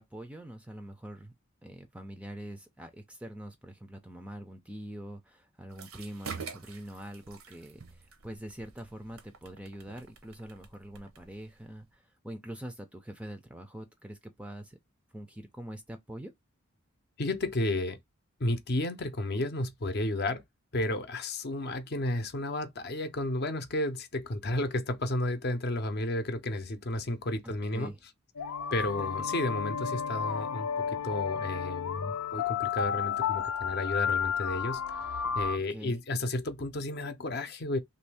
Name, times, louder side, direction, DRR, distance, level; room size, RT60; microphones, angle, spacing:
voice 1, 0.0-1.3 1.6-14.8 15.1-16.3 27.4-28.0 28.7-29.3 35.7-36.0, right 1 dB, 5° right, 0.4 m, -44 dB
sound 1, 5.7-11.9, right 5 dB, 70° right, 0.7 m, -47 dB
voice 2, 17.2-18.0 18.4-20.4 20.7-27.9 28.7-34.8 35.3-37.8, left 1 dB, 50° left, 0.6 m, -32 dB
sound 2, 28.4-35.6, left 7 dB, 90° left, 0.5 m, -32 dB
3.0 x 2.6 x 3.3 m
head